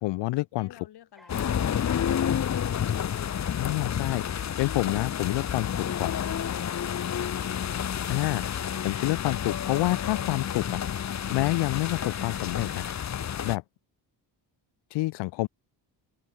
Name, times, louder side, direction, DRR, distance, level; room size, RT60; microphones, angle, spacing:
voice 1, 0.0-0.7 3.6-6.2 8.1-10.8 11.3-12.8 13.4-13.6 14.9-15.5, left 20 dB, 90° left, 0.6 m, -28 dB
voice 2, 0.6-2.7, left 11 dB, 70° left, 7.1 m, -53 dB
sound 1, 1.1-13.6, equal, ahead, 4.4 m, -56 dB
sound 2, 1.3-13.6, left 9 dB, 40° left, 1.3 m, -30 dB
cardioid pair, 125°, 41 cm